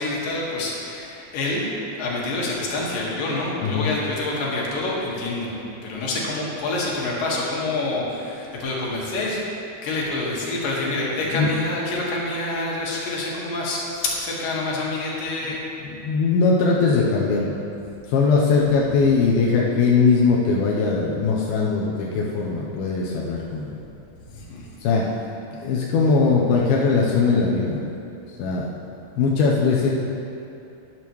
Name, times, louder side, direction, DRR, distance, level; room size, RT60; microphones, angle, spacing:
voice 1, 0.0-1.7 2.0-5.5 5.8-9.4 9.8-15.6 24.3-24.7, left 2 dB, 70° left, -4 dB, 3.3 m, -27 dB
voice 2, 15.8-17.6 18.1-23.7 24.8-25.2 25.6-27.8 28.4-28.7 29.2-29.9, left 4 dB, 90° left, -4 dB, 2.7 m, -20 dB
12.5 x 10.5 x 3.1 m, 2.7 s
omnidirectional pair, 4.2 m